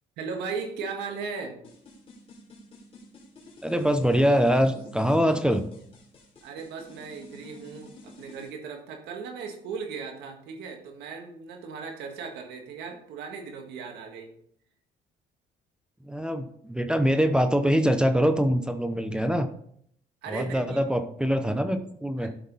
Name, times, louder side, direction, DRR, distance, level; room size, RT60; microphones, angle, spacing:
voice 1, 0.2-1.6 6.4-14.3 20.2-20.8 22.2-22.3, right 5 dB, 85° right, 3 dB, 1.8 m, -37 dB
sound 1, 1.6-8.5, left 2 dB, 35° left, 3.3 m, -49 dB
voice 2, 3.6-5.7 16.0-19.5 20.3-22.3, equal, 5° right, 9 dB, 0.8 m, -24 dB
12.0 x 5.9 x 4.0 m, 0.66 s
cardioid pair, 110°, 17 cm